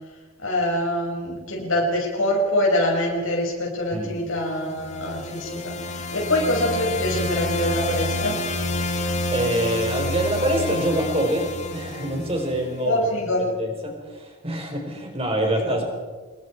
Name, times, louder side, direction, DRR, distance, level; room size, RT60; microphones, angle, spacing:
voice 1, 0.4-8.4 12.8-13.5 15.6-15.8, left 1 dB, 80° left, -2 dB, 6.1 m, -24 dB
sound 1, 4.6-12.7, left 2 dB, 35° left, 2.0 m, -28 dB
voice 2, 8.8-13.1 13.4-15.8, right 1 dB, 30° right, 2 dB, 4.8 m, -26 dB
27.0 x 21.5 x 4.9 m, 1.4 s
head